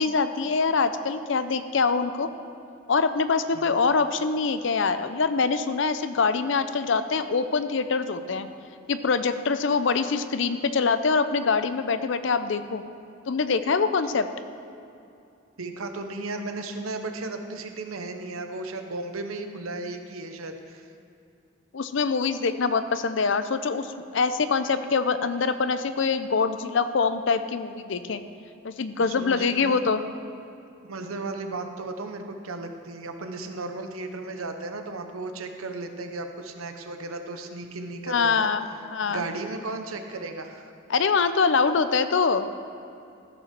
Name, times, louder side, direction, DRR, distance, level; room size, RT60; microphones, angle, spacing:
voice 1, 0.0-2.3 2.9-8.5 8.9-12.8 13.3-14.3 21.7-28.2 28.6-30.0 38.1-38.6 38.9-39.2 40.9-42.5, left 4 dB, 60° left, 11 dB, 0.5 m, -24 dB
voice 2, 3.5-3.9 15.6-20.9 29.0-29.8 30.8-38.5 39.1-40.7, right 2 dB, 90° right, 6 dB, 0.9 m, -35 dB
14.5 x 5.6 x 5.9 m, 2.6 s
head